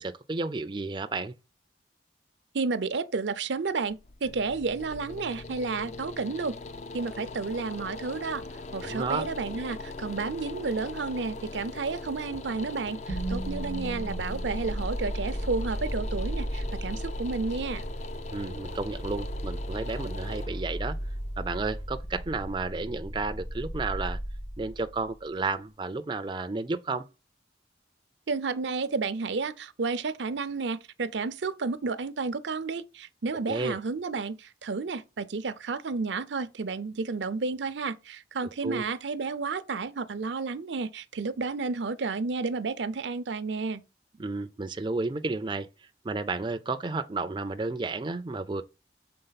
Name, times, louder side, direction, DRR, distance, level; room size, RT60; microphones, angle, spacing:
voice 1, 0.0-1.3 8.8-9.3 18.3-21.0 21.4-24.2 24.6-27.0 33.5-33.8 38.6-38.8 44.2-48.6, right 3 dB, 25° right, 0.4 m, -32 dB
voice 2, 2.5-6.6 6.9-8.4 8.7-17.8 28.3-43.8, right 4 dB, 80° right, 0.6 m, -31 dB
sound 1, 3.8-22.8, left 3 dB, 40° left, 0.4 m, -41 dB
sound 2, 13.1-25.2, equal, 70° left, 1.6 m, -35 dB
6.6 x 3.9 x 4.0 m
head